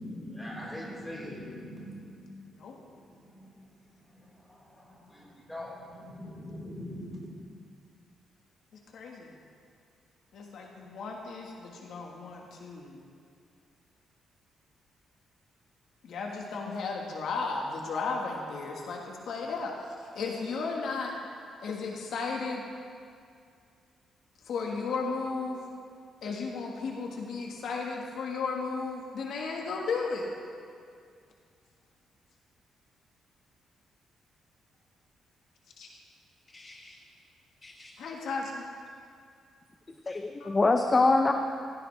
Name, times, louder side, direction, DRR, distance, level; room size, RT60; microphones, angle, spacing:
voice 1, 0.0-2.2 2.5-3.5 4.1-7.3, left 1 dB, 5° left, -7 dB, 4.3 m, -42 dB
voice 2, 8.9-9.3 10.3-13.0 16.0-21.1 21.6-22.6 24.5-25.6 26.2-30.3 35.8-35.9 38.0-38.6 40.4-40.5, left 4 dB, 65° left, 0 dB, 1.6 m, -34 dB
voice 3, 36.5-36.9 37.6-37.9 40.1-41.3, left 3 dB, 20° left, 5 dB, 0.6 m, -25 dB
16.0 x 16.0 x 3.4 m, 2.3 s
cardioid pair, 160°, 0 cm